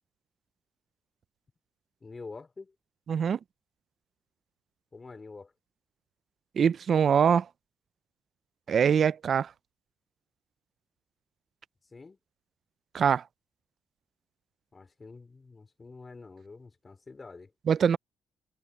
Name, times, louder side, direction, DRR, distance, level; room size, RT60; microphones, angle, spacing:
voice 1, 2.0-2.7 4.9-5.5 11.9-12.2 14.7-17.5, left 4 dB, 30° left, 4.9 m, -46 dB
voice 2, 3.1-3.4 6.6-7.5 8.7-9.5 12.9-13.2 17.7-18.0, right 7 dB, 55° right, 0.4 m, -23 dB
cardioid pair, 90°, 0 cm